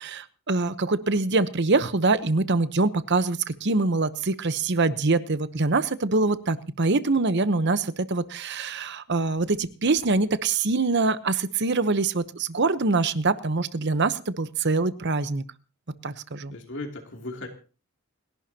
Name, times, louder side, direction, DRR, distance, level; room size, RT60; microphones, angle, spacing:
voice 1, 0.0-15.4 16.0-16.5, right 3 dB, 50° right, 13 dB, 0.9 m, -24 dB
voice 2, 16.5-17.5, left 2 dB, 60° left, 1 dB, 2.9 m, -36 dB
29.5 x 11.5 x 2.9 m, 0.36 s
head